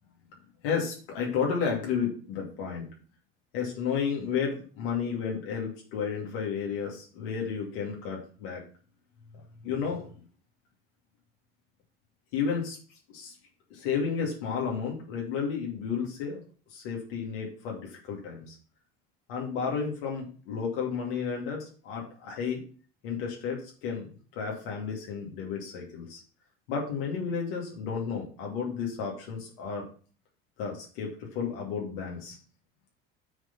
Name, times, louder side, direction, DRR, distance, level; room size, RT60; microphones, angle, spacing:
voice 1, 0.6-2.9 3.5-8.6 9.6-10.2 12.3-12.8 13.1-13.3 13.7-16.4 16.7-18.6 19.3-22.6 23.0-26.2 26.7-29.8 30.6-32.4, left 6 dB, 80° left, -1 dB, 2.4 m, -32 dB
9.6 x 3.8 x 5.3 m, 0.42 s
supercardioid pair, 85°, 29 cm